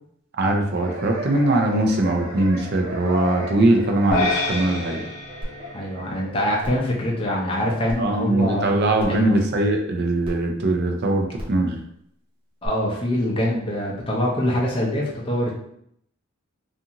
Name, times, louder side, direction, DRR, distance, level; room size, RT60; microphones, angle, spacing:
voice 1, 0.4-5.0 8.0-11.8, right 2 dB, 50° right, 3 dB, 0.5 m, -21 dB
sound 1, 0.8-9.0, equal, 80° right, 1.1 m, -37 dB
sound 2, 4.1-6.6, left 2 dB, 80° left, 0.6 m, -28 dB
sound 3, 5.4-5.5 6.0-6.1 6.6-6.9 7.9-8.0 9.0-9.2 10.2-10.3 11.3-11.6 12.6-12.7, equal, 25° right, 0.8 m, -33 dB
voice 2, 5.7-8.7 9.1-9.4 12.6-15.5, left 1 dB, 25° left, -3 dB, 0.5 m, -24 dB
2.5 x 2.5 x 2.8 m, 0.72 s
head